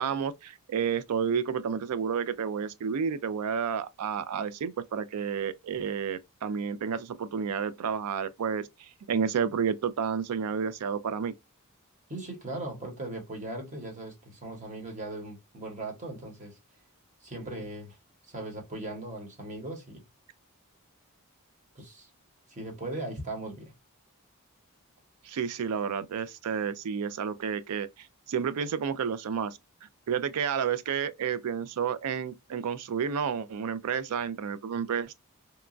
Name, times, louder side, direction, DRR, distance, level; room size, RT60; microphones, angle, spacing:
voice 1, 0.0-11.3 25.2-29.6 30.1-35.1, right 7 dB, 85° right, 0.4 m, -31 dB
voice 2, 12.1-16.6 17.2-18.0 18.3-20.0 21.8-22.1 22.5-23.7, right 2 dB, 35° right, 1.0 m, -38 dB
2.9 x 2.3 x 2.4 m
head